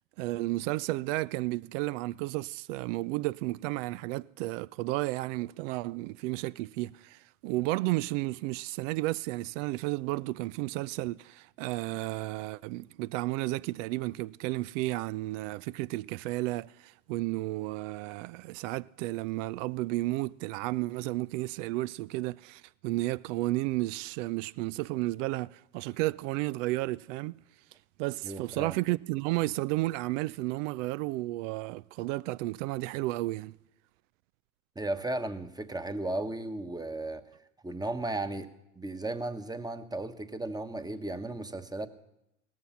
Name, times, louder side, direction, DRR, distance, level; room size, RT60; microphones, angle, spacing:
voice 1, 0.2-27.4 28.0-33.5, right 19 dB, 60° right, 0.5 m, -32 dB
voice 2, 28.2-28.8 34.7-37.2 37.6-38.5 38.7-41.9, right 2 dB, 10° right, 1.2 m, -35 dB
17.5 x 13.5 x 5.8 m
hypercardioid pair, 80°, 42 cm